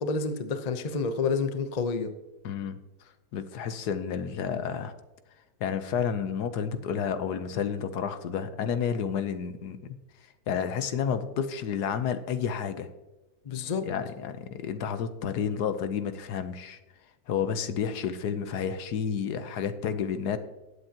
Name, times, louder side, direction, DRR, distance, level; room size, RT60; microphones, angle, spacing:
voice 1, 0.0-2.1 13.4-13.9, left 4 dB, 35° left, 9 dB, 0.7 m, -29 dB
voice 2, 2.4-2.8 3.3-4.9 5.6-10.0 10.5-12.9 13.8-16.8 17.3-20.4, left 7 dB, 75° left, 10 dB, 1.4 m, -30 dB
19.5 x 8.1 x 2.9 m, 1.1 s
omnidirectional pair, 1.7 m